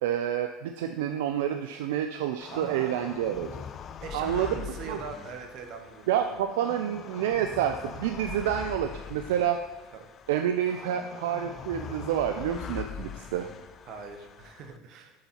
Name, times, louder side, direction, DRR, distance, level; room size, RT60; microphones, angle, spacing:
voice 1, 0.0-3.5 4.1-5.0 6.1-9.6 10.3-13.5, right 10 dB, 80° right, 6 dB, 0.3 m, -28 dB
sound 1, 2.4-14.8, left 7 dB, 40° left, 0.4 m, -42 dB
voice 2, 2.5-2.9 4.0-6.5 9.9-10.1 10.6-10.7 13.9-15.1, right 5 dB, 55° right, 4 dB, 1.1 m, -42 dB
7.6 x 4.1 x 4.4 m, 1.2 s
hypercardioid pair, 90°, 0 cm